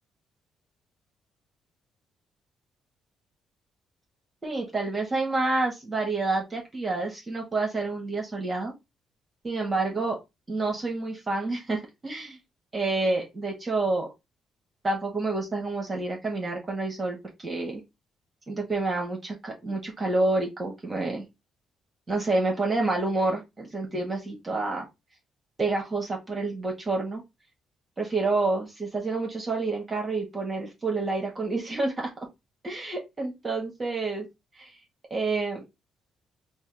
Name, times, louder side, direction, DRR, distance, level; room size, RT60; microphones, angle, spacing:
voice 1, 4.4-8.7 9.4-10.2 10.5-12.4 12.7-14.1 14.8-17.8 18.5-21.3 22.1-24.9 25.6-27.2 28.0-32.1 32.6-34.3 34.6-34.7 35.1-35.7, right 2 dB, 30° right, 0 dB, 1.3 m, -28 dB
4.1 x 2.0 x 3.8 m, 0.22 s
cardioid pair, 90°, 0 cm